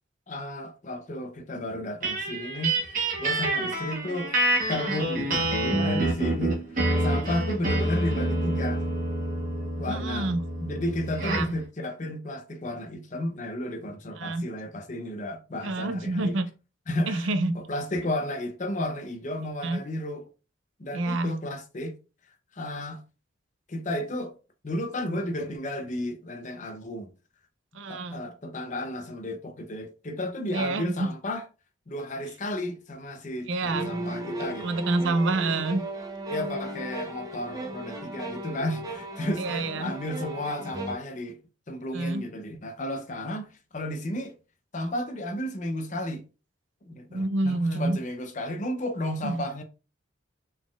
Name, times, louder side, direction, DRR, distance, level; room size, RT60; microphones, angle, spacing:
voice 1, 0.3-2.8 3.2-4.3 4.7-8.8 9.8-16.4 16.9-20.3 20.8-22.0 22.5-23.0 23.7-24.4 24.6-27.1 27.9-31.5 31.9-34.9 36.3-41.4 41.7-44.4 44.7-46.2 46.9-49.6, left 1 dB, 35° left, 0.6 m, -33 dB
sound 1, 2.0-11.6, right 1 dB, 40° right, 1.2 m, -27 dB
voice 2, 9.9-10.4 11.2-11.5 14.2-14.4 15.6-16.5 17.1-17.5 19.6-19.8 20.9-21.3 27.8-28.2 30.5-30.9 33.5-33.9 34.6-35.8 39.4-39.9 41.9-42.2 47.1-48.0 49.2-49.4, right 2 dB, 70° right, 0.5 m, -27 dB
sound 2, 33.7-41.0, right 1 dB, 20° right, 0.6 m, -35 dB
4.1 x 3.7 x 2.3 m
head